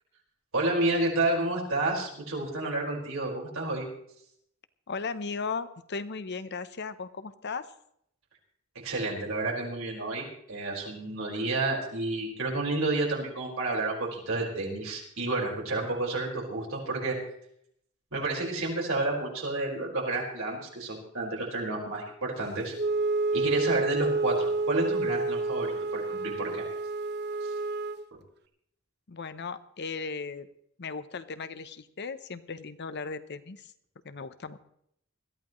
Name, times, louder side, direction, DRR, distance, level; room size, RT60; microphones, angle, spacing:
voice 1, 0.5-3.9 8.7-17.2 18.1-22.7 23.3-26.6 27.4-27.5, right 2 dB, 75° right, -2 dB, 5.0 m, -30 dB
voice 2, 4.9-7.7 29.1-30.5 30.8-33.6 34.0-34.6, left 4 dB, 55° left, 12 dB, 0.8 m, -36 dB
Wind instrument woodwind instrument, 22.7-28.0, right 3 dB, 55° right, 0.7 m, -29 dB
21.0 x 14.0 x 3.1 m, 0.70 s
head